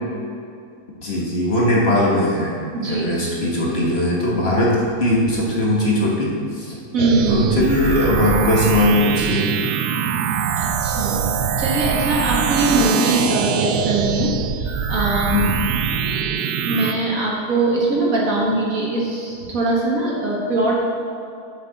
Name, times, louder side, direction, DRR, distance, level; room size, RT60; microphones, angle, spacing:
voice 1, 1.0-6.7 7.3-9.5 15.3-15.8, left 1 dB, 45° left, -5 dB, 1.5 m, -20 dB
voice 2, 2.7-3.2 6.9-7.4 10.6-15.5 16.3-20.9, right 2 dB, 65° right, -4 dB, 1.9 m, -22 dB
sound 1, 7.0-16.9, right 7 dB, 90° right, 1.1 m, -23 dB
7.2 x 6.6 x 4.0 m, 2.5 s
omnidirectional pair, 1.6 m